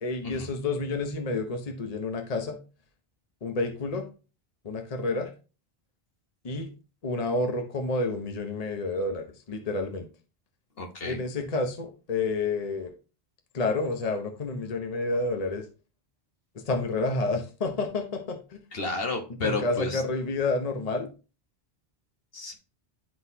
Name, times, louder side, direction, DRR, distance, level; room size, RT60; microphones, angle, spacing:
voice 1, 0.0-2.6 3.4-4.1 4.6-5.3 6.4-6.7 7.0-10.1 11.0-12.9 13.5-15.7 16.5-18.6 19.4-21.1, left 3 dB, 40° left, 4 dB, 0.9 m, -29 dB
voice 2, 10.8-11.2 18.7-20.0 22.3-22.6, left 3 dB, 65° left, 2 dB, 1.5 m, -31 dB
11.5 x 3.9 x 2.7 m, 0.34 s
omnidirectional pair, 1.1 m